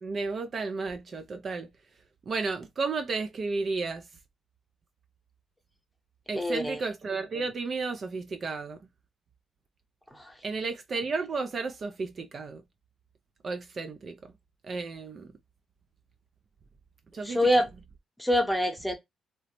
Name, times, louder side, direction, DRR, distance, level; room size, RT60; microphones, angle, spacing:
voice 1, 0.0-1.7 2.3-4.0 6.3-8.8 10.4-12.6 13.4-14.3 14.6-15.3 17.1-17.6, right 4 dB, 45° right, 0.4 m, -33 dB
voice 2, 6.4-6.8 10.2-10.3 17.2-17.7 18.2-18.9, equal, 5° left, 0.8 m, -25 dB
2.8 x 2.1 x 2.8 m
cardioid pair, 90°, 0 cm